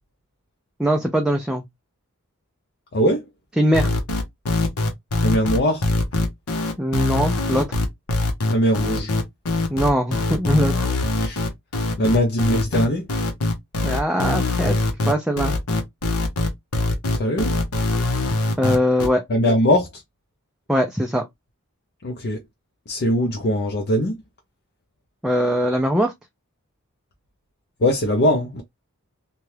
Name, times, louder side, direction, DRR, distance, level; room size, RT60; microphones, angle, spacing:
voice 1, 0.8-1.6 3.6-3.9 6.8-7.8 9.7-10.7 13.8-15.5 18.6-19.2 20.7-21.2 25.2-26.1, equal, 5° right, 0.3 m, -21 dB
voice 2, 2.9-3.3 5.2-5.9 8.5-9.1 11.2-11.4 12.0-13.1 17.1-17.5 19.3-20.0 22.0-22.4 22.9-24.2 27.8-28.6, equal, 50° left, 0.6 m, -21 dB
sound 1, 3.7-19.1, left 2 dB, 80° left, 0.8 m, -22 dB
2.8 x 2.3 x 3.1 m
head